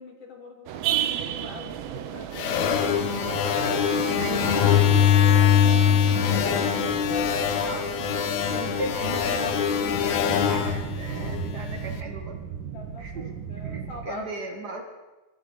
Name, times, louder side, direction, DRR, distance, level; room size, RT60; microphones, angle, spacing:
voice 1, 0.0-3.3 5.4-6.6 12.7-14.3, left 3 dB, 45° left, 2 dB, 2.8 m, -44 dB
sound 1, 0.7-9.6, right 11 dB, 85° right, 2.7 m, -33 dB
sound 2, 0.8-14.1, right 7 dB, 70° right, 2.8 m, -39 dB
sound 3, 2.4-11.8, left 8 dB, 70° left, 1.9 m, -23 dB
voice 2, 3.9-5.0 6.1-6.2 7.6-7.9 8.5-12.4 13.0-13.2 13.6-14.8, right 2 dB, 45° right, 2 dB, 1.3 m, -37 dB
22.5 x 15.0 x 4.0 m, 1.1 s
omnidirectional pair, 4.1 m